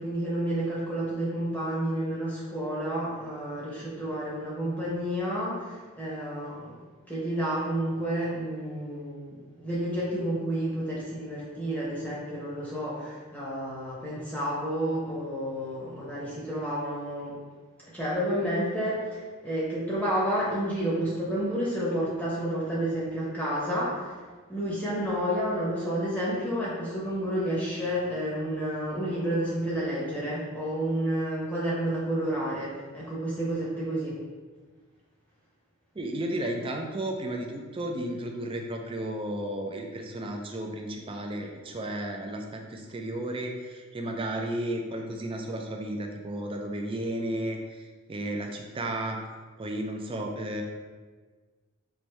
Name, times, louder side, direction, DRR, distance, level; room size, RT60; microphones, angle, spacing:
voice 1, 0.0-6.8 7.1-17.3 17.9-24.2 24.5-34.2, right 1 dB, 5° left, -8 dB, 0.8 m, -30 dB
voice 2, 36.0-49.2 49.6-50.6, right 1 dB, 25° right, 2 dB, 0.4 m, -33 dB
4.5 x 2.6 x 3.1 m, 1.4 s
head